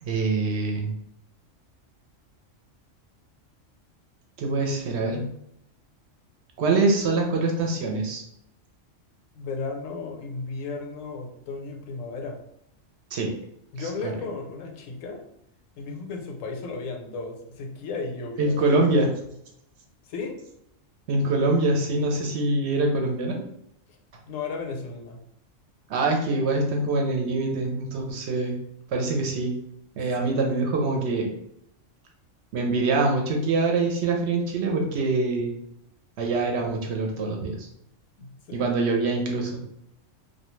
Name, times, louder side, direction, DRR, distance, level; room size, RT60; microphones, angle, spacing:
voice 1, 0.0-0.9 4.4-5.3 6.6-8.2 13.1-13.3 13.8-14.1 18.4-19.1 21.1-23.4 25.9-28.6 28.9-29.5 30.0-31.3 32.5-35.5 36.2-37.7 38.5-39.6, right 3 dB, 65° right, 1 dB, 0.8 m, -24 dB
voice 2, 9.3-12.4 13.7-15.2 15.8-18.6 20.1-20.4 24.3-25.2 30.2-30.4 38.2-38.7, left 4 dB, 85° left, 3 dB, 1.0 m, -34 dB
2.3 x 2.2 x 3.0 m, 0.76 s
omnidirectional pair, 1.3 m